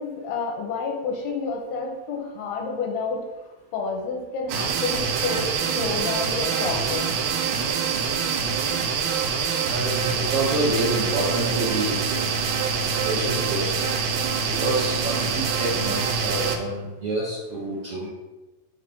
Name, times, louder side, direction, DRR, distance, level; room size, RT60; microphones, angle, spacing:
voice 1, 0.0-3.2 3.7-7.1, left 4 dB, 85° left, 1 dB, 2.9 m, -29 dB
sound 1, 4.5-16.6, right 6 dB, 85° right, 2.4 m, -25 dB
voice 2, 9.7-12.3 12.7-13.7 14.5-18.1, right 2 dB, 65° right, -7 dB, 1.5 m, -28 dB
6.6 x 2.9 x 5.4 m, 1.1 s
omnidirectional pair, 4.3 m